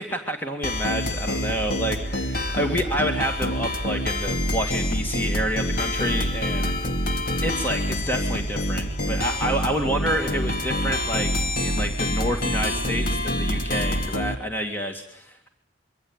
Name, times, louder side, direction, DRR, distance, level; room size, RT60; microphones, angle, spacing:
voice 1, 0.0-6.7 7.4-15.5, equal, 10° left, 4 dB, 2.2 m, -28 dB
sound 1, 0.6-14.4, left 1 dB, 50° left, 2.6 m, -26 dB
26.0 x 24.5 x 9.0 m, 0.68 s
head